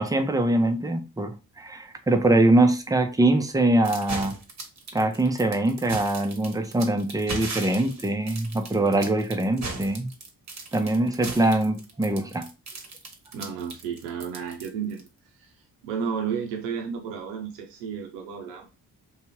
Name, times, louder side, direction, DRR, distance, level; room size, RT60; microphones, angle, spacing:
voice 1, 0.0-4.4 4.9-10.1 10.7-12.5, right 2 dB, 10° right, 0.5 m, -23 dB
sound 1, 3.8-15.1, right 3 dB, 40° right, 0.9 m, -37 dB
voice 2, 13.3-15.0 15.4-15.5 15.8-18.6, right 7 dB, 85° right, 0.6 m, -32 dB
2.7 x 2.3 x 3.0 m
hypercardioid pair, 40°, 43 cm